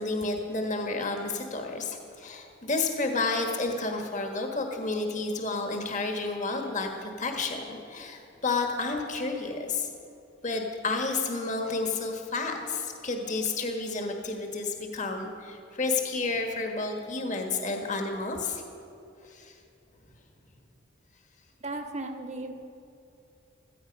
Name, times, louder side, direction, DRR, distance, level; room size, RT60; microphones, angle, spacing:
voice 1, 0.0-9.9 10.4-18.6 19.2-19.5, left 3 dB, 40° left, 3 dB, 1.5 m, -31 dB
voice 2, 21.6-22.5, right 2 dB, 35° right, 4 dB, 1.3 m, -35 dB
16.5 x 14.5 x 5.3 m, 2.8 s
head